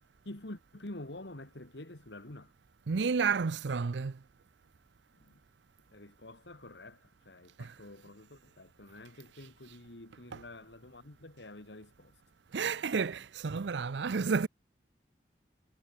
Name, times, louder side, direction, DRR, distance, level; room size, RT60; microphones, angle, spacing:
voice 1, 0.2-2.5 5.1-5.4 5.9-12.1, left 1 dB, 75° left, 2.4 m, -48 dB
voice 2, 2.9-4.1 7.6-7.7 10.3-10.4 12.5-14.5, right 5 dB, 80° right, 0.5 m, -31 dB
head